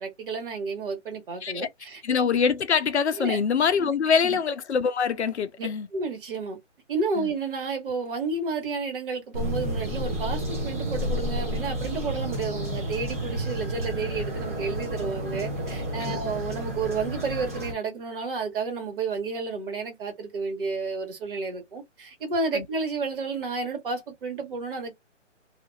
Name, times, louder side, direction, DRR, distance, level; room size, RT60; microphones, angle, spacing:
voice 1, 0.0-2.0 3.2-3.4 3.8-3.9 4.2-4.4 5.6-6.6 6.9-24.9, right 4 dB, 45° right, 1.6 m, -31 dB
voice 2, 2.0-5.9 7.2-7.3 16.0-16.2 22.5-22.6, left 6 dB, 60° left, 0.6 m, -24 dB
sound 1, 9.3-17.7, equal, 15° right, 0.5 m, -31 dB
2.8 x 2.5 x 2.3 m
figure-of-eight pair, 145°, 37 cm